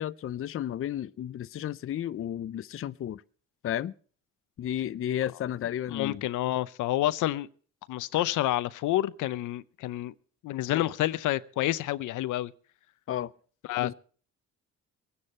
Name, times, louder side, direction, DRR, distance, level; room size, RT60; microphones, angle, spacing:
voice 1, 0.0-3.2 3.6-3.9 4.6-6.2 10.7-10.8 13.1-13.3 13.8-13.9, left 11 dB, 45° left, 0.5 m, -33 dB
voice 2, 5.9-7.5 7.9-10.1 10.4-12.5 13.7-13.9, left 15 dB, 85° left, 0.7 m, -29 dB
23.0 x 9.8 x 4.3 m
cardioid pair, 90°, 30 cm